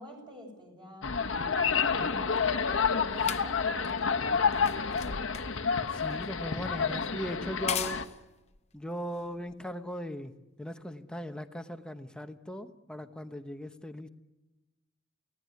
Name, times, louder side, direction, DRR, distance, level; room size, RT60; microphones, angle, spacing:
voice 1, 0.0-5.1, equal, 25° right, 1 dB, 6.8 m, -49 dB
sound 1, 1.0-8.0, left 6 dB, 75° left, 1.2 m, -29 dB
sound 2, 1.3-10.0 10.8-10.9, left 8 dB, 35° left, 0.8 m, -42 dB
voice 2, 5.9-8.0 8.7-10.3 10.6-14.1, equal, 5° left, 7 dB, 1.1 m, -39 dB
29.5 x 17.5 x 9.6 m, 1.1 s
head